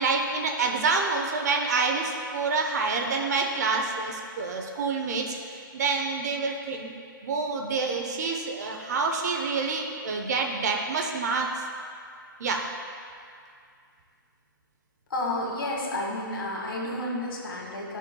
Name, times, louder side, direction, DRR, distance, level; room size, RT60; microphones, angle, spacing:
voice 1, 0.0-6.9 7.2-11.7 12.4-12.7, right 4 dB, 50° right, 2 dB, 0.8 m, -27 dB
voice 2, 15.1-18.0, left 1 dB, 80° left, -2 dB, 1.9 m, -31 dB
12.5 x 6.4 x 2.3 m, 2.3 s
hypercardioid pair, 165°, 12 cm